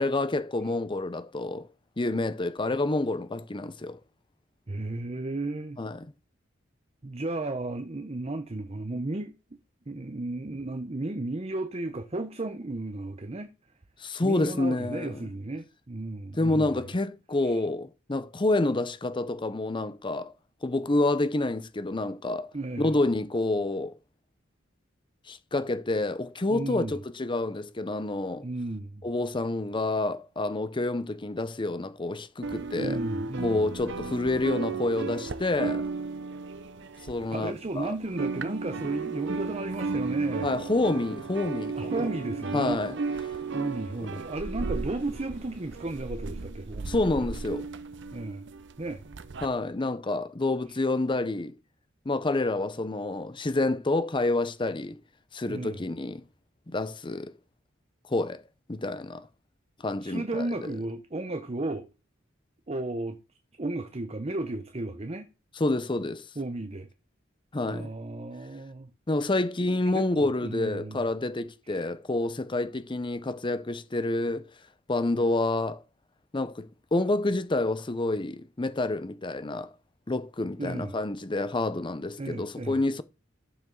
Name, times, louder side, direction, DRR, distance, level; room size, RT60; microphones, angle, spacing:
voice 1, 0.0-1.7 2.0-4.0 5.8-6.1 14.0-15.2 16.4-20.3 20.6-22.5 22.8-24.0 25.3-28.5 29.0-33.0 33.4-35.9 37.1-37.9 40.4-42.1 42.5-42.9 46.9-47.7 49.4-51.5 52.1-55.0 55.3-56.2 56.7-57.3 58.1-58.4 58.7-59.3 59.8-60.7 65.6-66.2 67.5-67.9 69.1-74.5 74.9-75.8 76.3-79.7 80.1-83.0, left 2 dB, 25° left, 0.7 m, -28 dB
voice 2, 4.7-5.8 7.0-9.6 9.9-13.5 14.2-16.8 17.4-17.6 22.5-22.9 26.5-27.0 28.4-29.0 32.8-33.7 37.3-40.5 41.8-42.8 43.5-47.3 48.1-48.5 48.8-49.0 55.5-55.9 60.0-61.9 62.7-63.2 63.6-65.3 66.4-66.9 67.7-68.9 69.9-71.1 71.7-71.8 80.6-80.9 82.2-82.8, right 2 dB, 35° right, 0.8 m, -34 dB
sound 1, 32.4-37.8 38.0-49.5, right 4 dB, 65° right, 0.8 m, -34 dB
sound 2, 36.8-45.9, left 1 dB, 10° left, 4.6 m, -56 dB
12.5 x 7.2 x 3.9 m
head